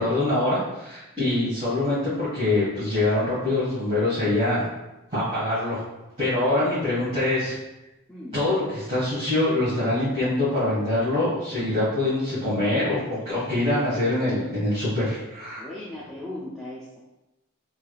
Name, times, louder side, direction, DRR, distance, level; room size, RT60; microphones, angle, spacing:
voice 1, 0.0-4.7 5.1-5.8 6.2-7.6 8.3-15.6, left 2 dB, 30° right, -13 dB, 1.3 m, -24 dB
voice 2, 15.6-17.0, left 1 dB, 5° left, -6 dB, 0.3 m, -37 dB
3.2 x 3.1 x 2.3 m, 0.98 s
head